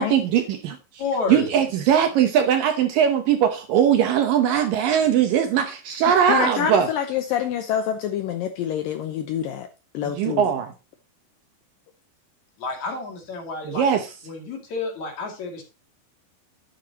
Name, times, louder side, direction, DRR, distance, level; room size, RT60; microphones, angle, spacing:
voice 1, 0.0-1.0 1.3-6.9 10.0-10.7 13.6-14.2, right 9 dB, 70° right, 2.2 m, -20 dB
voice 2, 1.0-1.5 12.6-13.9 14.3-15.6, left 3 dB, 50° left, 3.4 m, -30 dB
voice 3, 6.3-9.7 9.9-10.5, left 9 dB, 75° left, 2.2 m, -26 dB
11.0 x 9.4 x 2.9 m
omnidirectional pair, 4.8 m